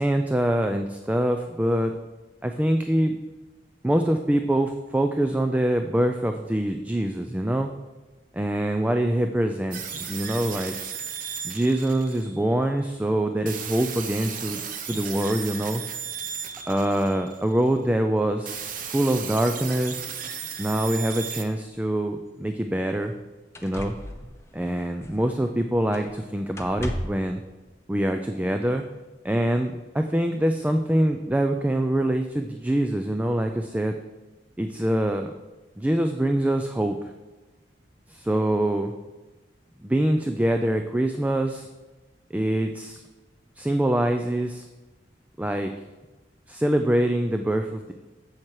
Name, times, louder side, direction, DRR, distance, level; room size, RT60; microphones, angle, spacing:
voice 1, 0.0-1.9 2.4-3.2 3.8-7.7 8.3-10.7 11.4-14.6 14.9-15.8 16.7-20.1 20.6-23.1 23.6-23.9 24.5-27.4 27.9-28.8 29.2-34.0 34.6-35.3 35.8-37.0 38.1-38.9 39.8-41.7 42.3-43.0 43.6-44.7 45.4-45.7 46.5-47.9, right 1 dB, 10° right, 6 dB, 0.3 m, -24 dB
sound 1, 9.7-12.6 13.5-17.7 18.5-21.4, right 7 dB, 45° right, 0.8 m, -35 dB
sound 2, 22.3-22.4 23.0-23.1 23.5-25.5 25.9-26.2 26.5-27.3 28.4-28.5, left 1 dB, 15° left, 0.7 m, -36 dB
7.6 x 7.4 x 4.7 m, 1.2 s
head